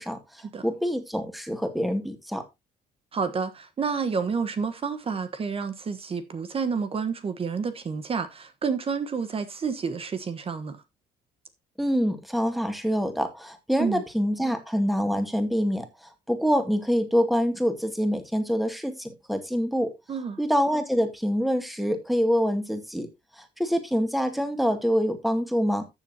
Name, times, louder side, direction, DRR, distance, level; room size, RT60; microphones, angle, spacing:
voice 1, 0.0-2.4 11.8-19.9 20.4-23.1 23.4-25.8, equal, ahead, 2.2 m, -26 dB
voice 2, 3.1-10.8 13.8-14.0 20.1-20.4, right 5 dB, 35° right, 1.2 m, -29 dB
14.0 x 7.0 x 2.8 m
cardioid pair, 110°, 17 cm